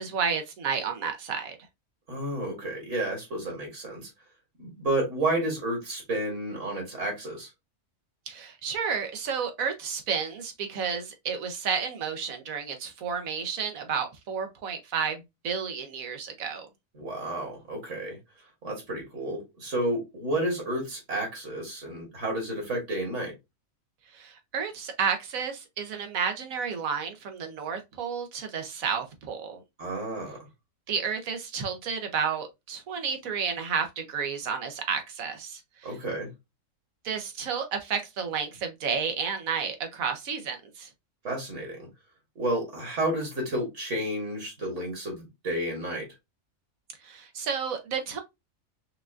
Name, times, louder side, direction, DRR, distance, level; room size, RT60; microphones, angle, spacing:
voice 1, 0.0-1.6 8.3-16.7 24.1-29.6 30.9-36.0 37.0-40.9 47.0-48.2, right 6 dB, 85° right, 1.3 m, -31 dB
voice 2, 2.1-4.1 4.6-7.5 17.0-18.2 18.6-23.3 29.8-30.4 35.8-36.3 41.2-41.9 42.4-46.1, right 1 dB, 65° right, 2.0 m, -31 dB
5.4 x 2.4 x 2.4 m
omnidirectional pair, 1.4 m